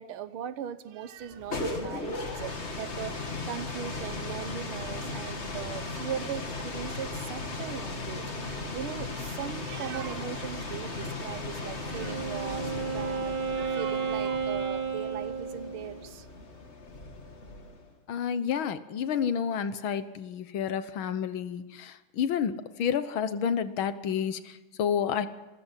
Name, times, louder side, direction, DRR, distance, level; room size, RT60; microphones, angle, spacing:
voice 1, 0.0-16.3, right 9 dB, 90° right, 13 dB, 1.9 m, -39 dB
sound 1, 1.2-17.9, left 3 dB, 35° left, 2.2 m, -37 dB
Wind instrument woodwind instrument, 11.7-16.1, right 5 dB, 40° right, 0.7 m, -32 dB
voice 2, 18.1-25.3, left 8 dB, 75° left, 12 dB, 1.9 m, -30 dB
26.5 x 15.5 x 7.5 m, 1.1 s
omnidirectional pair, 2.3 m